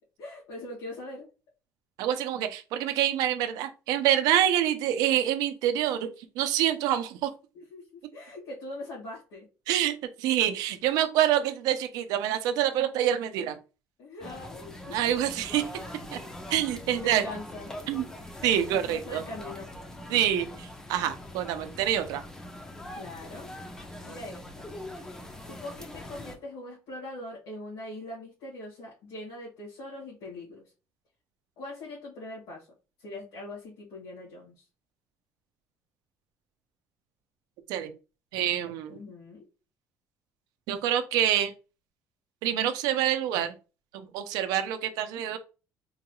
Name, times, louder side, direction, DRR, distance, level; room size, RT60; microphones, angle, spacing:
voice 1, 0.2-1.3 7.5-9.5 14.0-15.0 16.7-17.7 18.7-19.7 22.9-23.5 24.0-24.7 25.4-30.6 31.6-32.7 33.0-34.7 38.9-39.4, left 1 dB, 85° left, -6 dB, 1.8 m, -42 dB
voice 2, 2.0-6.1 6.4-7.3 9.7-13.6 14.9-15.7 16.1-16.2 16.5-17.2 17.9-18.0 18.4-19.2 20.1-22.2 37.7-37.9 38.3-38.9 40.7-41.5 42.4-43.5 43.9-45.4, right 11 dB, 80° right, 9 dB, 0.5 m, -26 dB
sound 1, 14.2-26.4, left 1 dB, 10° left, 0.4 m, -42 dB
3.8 x 2.3 x 2.9 m, 0.32 s
cardioid pair, 175°, 6 cm